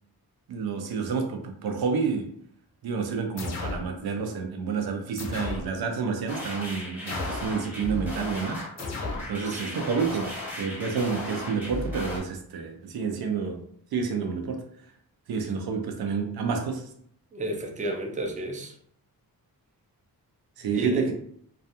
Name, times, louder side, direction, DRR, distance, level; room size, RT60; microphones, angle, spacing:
voice 1, 0.5-2.3 2.8-8.6 9.3-13.6 13.9-14.6 15.3-16.9 20.6-21.1, right 5 dB, 80° right, 0.5 m, -29 dB
sound 1, 3.4-3.9 5.2-5.7 7.1-7.6 8.8-9.3, left 3 dB, 45° left, 0.5 m, -34 dB
sound 2, 6.3-12.2, left 1 dB, 5° right, 0.9 m, -36 dB
voice 2, 9.4-9.7 17.3-18.7 20.7-21.1, right 1 dB, 20° right, 0.4 m, -32 dB
2.3 x 2.3 x 2.7 m
wide cardioid pair, 115°, 37 cm